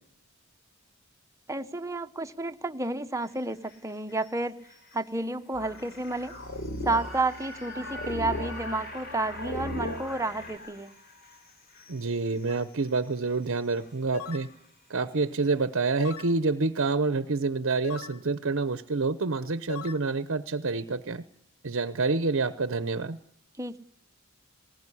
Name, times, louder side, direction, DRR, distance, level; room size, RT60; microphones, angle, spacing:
voice 1, 1.5-4.6 4.9-6.3 6.8-11.0 23.6-23.8, right 2 dB, 15° right, 8 dB, 0.9 m, -31 dB
sound 1, 3.1-15.5 15.8-15.9, left 1 dB, 45° left, 6.2 m, -47 dB
sound 2, 5.5-10.6, left 1 dB, 60° left, 4.5 m, -37 dB
voice 2, 11.9-14.5 14.9-21.2 21.6-23.2, right 3 dB, 60° right, 12 dB, 0.8 m, -28 dB
sound 3, 12.5-12.7 14.1-14.5 16.0-16.4 17.8-18.2 19.7-20.0, left 5 dB, 85° left, 1.1 m, -38 dB
20.0 x 18.5 x 9.9 m, 0.73 s
head